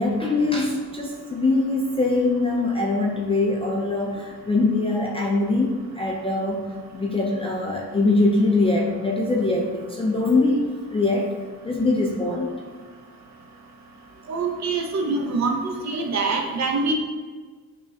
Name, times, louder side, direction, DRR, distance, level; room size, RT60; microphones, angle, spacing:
voice 1, 0.0-6.6 6.9-10.6 10.9-11.3 11.6-12.5, left 2 dB, 15° left, -2 dB, 0.4 m, -22 dB
voice 2, 14.3-15.6 15.8-16.9, right 4 dB, 40° right, 2 dB, 0.6 m, -24 dB
4.9 x 2.3 x 2.3 m, 1.5 s
hypercardioid pair, 55°, 42 cm